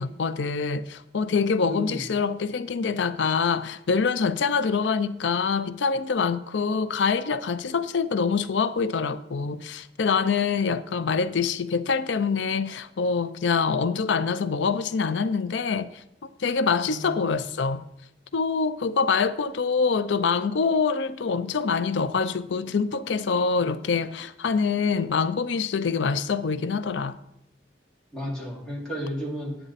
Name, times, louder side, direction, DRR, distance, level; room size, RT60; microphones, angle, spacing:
voice 1, 0.0-16.0 16.4-17.8 18.3-27.2, left 5 dB, 90° left, 0.5 m, -25 dB
voice 2, 1.6-2.0 16.9-17.3 28.1-29.6, equal, 5° left, 2.4 m, -33 dB
8.9 x 8.7 x 4.1 m
head